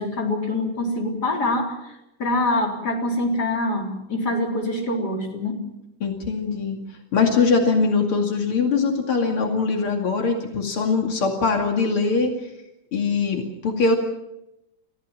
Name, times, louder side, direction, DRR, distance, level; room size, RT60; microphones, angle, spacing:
voice 1, 0.0-1.9 2.2-5.7, left 2 dB, 50° left, 1 dB, 4.4 m, -25 dB
voice 2, 6.0-6.8 7.1-12.5 12.9-14.0, left 4 dB, 85° left, 2 dB, 3.3 m, -22 dB
29.5 x 15.5 x 7.5 m, 0.90 s
omnidirectional pair, 2.3 m